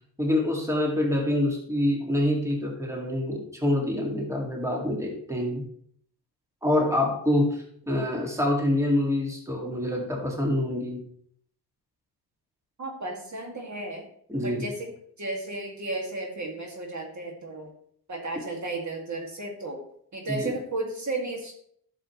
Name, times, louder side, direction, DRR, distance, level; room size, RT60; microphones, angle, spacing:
voice 1, 0.2-5.6 6.6-11.0 14.3-14.7 18.4-18.5 20.3-20.5, left 1 dB, 5° right, 0 dB, 2.1 m, -26 dB
voice 2, 12.8-14.1 14.4-17.7 18.1-19.8 20.1-21.5, right 2 dB, 45° right, 1 dB, 2.2 m, -34 dB
11.5 x 6.5 x 3.1 m, 0.64 s
cardioid pair, 90°, 41 cm